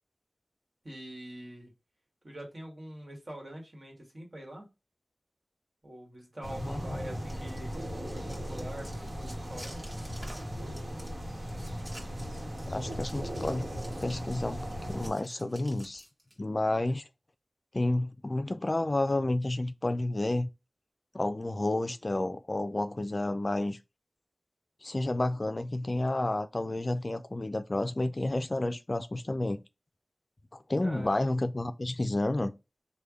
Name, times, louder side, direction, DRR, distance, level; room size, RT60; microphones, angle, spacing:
voice 1, 0.8-1.7 2.2-4.7 5.8-9.9 30.8-31.3, right 1 dB, 55° right, 1.4 m, -44 dB
sound 1, 6.4-15.1, equal, 70° right, 1.1 m, -37 dB
voice 2, 6.6-7.0 12.7-13.7 14.0-16.0 16.4-17.0 17.7-20.5 21.1-23.8 24.8-29.6 30.5-32.5, left 2 dB, 45° left, 0.3 m, -30 dB
sound 2, 7.0-16.3, equal, 35° right, 1.4 m, -50 dB
3.3 x 2.2 x 3.5 m
wide cardioid pair, 50°, 0 cm